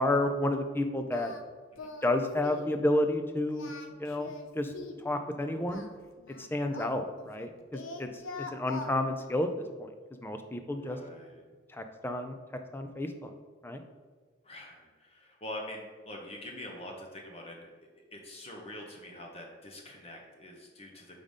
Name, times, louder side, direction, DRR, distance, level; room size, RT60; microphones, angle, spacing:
voice 1, 0.0-1.3 2.0-3.7 4.0-4.7 5.0-5.9 6.4-9.5 9.8-9.9 10.2-11.0 11.7-12.4 12.7-13.3 13.6-13.8, left 1 dB, 10° left, 6 dB, 0.4 m, -31 dB
Singing, 1.1-1.4 1.8-2.2 2.4-2.7 3.5-5.1 5.7-7.5 7.7-8.9, left 3 dB, 90° left, 0.6 m, -43 dB
voice 2, 10.8-11.4 14.4-21.2, left 1 dB, 30° left, 0 dB, 0.9 m, -45 dB
4.9 x 3.8 x 5.3 m, 1.5 s
head